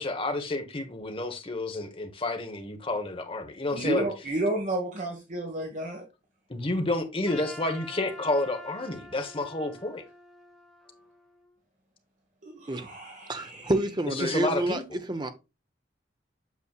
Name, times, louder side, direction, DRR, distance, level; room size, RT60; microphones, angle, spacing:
voice 1, 0.0-4.1 6.5-10.0 14.1-15.0, left 2 dB, 30° left, 1.2 m, -30 dB
voice 2, 3.7-6.0 12.4-13.7, right 1 dB, 45° right, 1.4 m, -31 dB
Trumpet, 7.3-11.6, left 1 dB, ahead, 1.9 m, -47 dB
voice 3, 13.3-14.8 15.1-15.3, right 1 dB, 25° right, 0.8 m, -28 dB
8.3 x 6.1 x 2.4 m
head